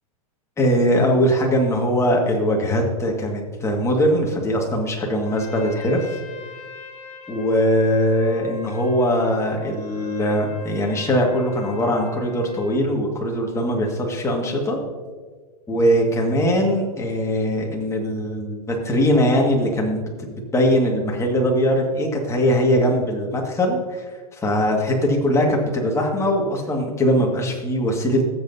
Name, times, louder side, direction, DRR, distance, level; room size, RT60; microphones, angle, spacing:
voice 1, 0.6-6.2 7.3-14.8 15.7-28.3, equal, 15° left, 0 dB, 1.9 m, -21 dB
Trumpet, 5.2-12.9, left 3 dB, 35° left, 1.6 m, -40 dB
15.0 x 7.8 x 2.8 m, 1.4 s
hypercardioid pair, 115°, 20 cm